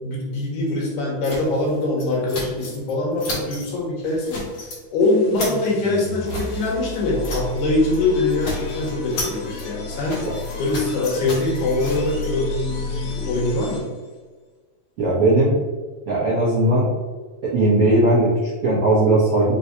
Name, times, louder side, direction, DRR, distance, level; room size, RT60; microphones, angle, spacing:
voice 1, 0.0-4.5 4.9-10.3 10.6-13.9, left 2 dB, 75° left, -3 dB, 2.5 m, -23 dB
sound 1, 1.2-2.9 3.2-3.7 4.0-4.8 5.1-7.6 7.9-8.0 8.3-12.3, left 2 dB, 50° left, 2.3 m, -34 dB
sound 2, 5.0-14.2, left 4 dB, 90° left, 2.4 m, -32 dB
voice 2, 15.0-15.5 16.1-16.9 17.4-19.5, right 1 dB, 75° right, -7 dB, 1.3 m, -18 dB
5.4 x 3.3 x 2.7 m, 1.4 s
omnidirectional pair, 3.7 m